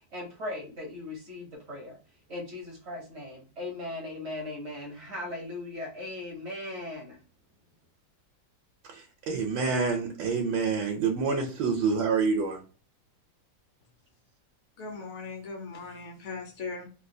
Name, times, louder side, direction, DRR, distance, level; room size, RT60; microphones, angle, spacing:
voice 1, 0.1-2.0 2.3-7.2, left 2 dB, 55° right, 0.8 m, -38 dB
voice 2, 8.9-12.6, right 5 dB, 75° right, 1.3 m, -27 dB
voice 3, 14.8-16.9, left 4 dB, 65° left, 0.7 m, -39 dB
3.8 x 2.3 x 2.6 m
omnidirectional pair, 2.1 m